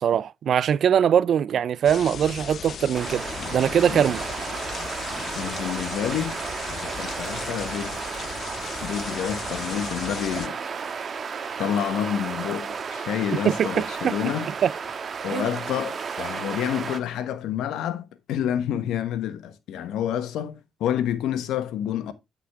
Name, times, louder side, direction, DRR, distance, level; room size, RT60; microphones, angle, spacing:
voice 1, 0.0-3.2 3.5-4.2 13.4-14.1 14.6-14.7 15.3-15.5, right 8 dB, 65° right, 0.4 m, -22 dB
sound 1, 1.8-10.5, left 8 dB, 55° left, 0.4 m, -37 dB
sound 2, 2.9-17.0, right 6 dB, 45° right, 1.3 m, -33 dB
voice 2, 5.3-6.4 6.8-8.1 8.8-10.6 11.6-14.5 15.2-22.1, left 10 dB, 85° left, 1.1 m, -28 dB
9.6 x 5.9 x 3.5 m
cardioid pair, 90°, 0 cm